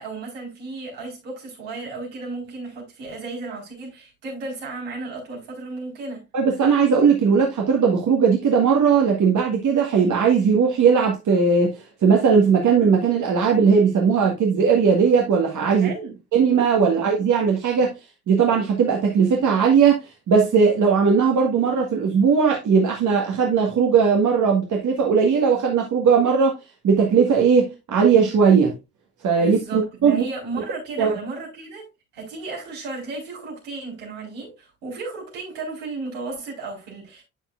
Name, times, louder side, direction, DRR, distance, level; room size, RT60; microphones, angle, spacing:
voice 1, 0.0-6.2 15.8-16.2 16.9-17.0 29.4-37.2, right 3 dB, 65° right, 4.6 m, -34 dB
voice 2, 6.3-15.9 16.3-17.9 18.3-26.6 26.8-28.7 29.2-30.2 31.0-31.1, right 6 dB, 45° right, 1.8 m, -18 dB
9.0 x 7.2 x 2.5 m
figure-of-eight pair, 50°, 43 cm